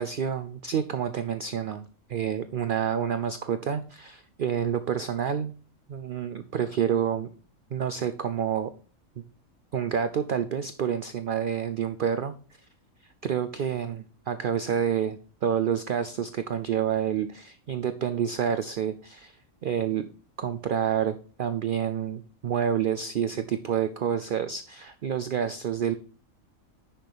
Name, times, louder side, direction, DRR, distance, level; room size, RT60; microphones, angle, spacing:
voice 1, 0.0-5.5 5.9-7.3 7.7-8.7 9.7-12.3 13.2-20.1 20.4-25.9, right 8 dB, 80° right, 10 dB, 0.4 m, -28 dB
10.5 x 5.9 x 3.4 m, 0.39 s
omnidirectional pair, 1.5 m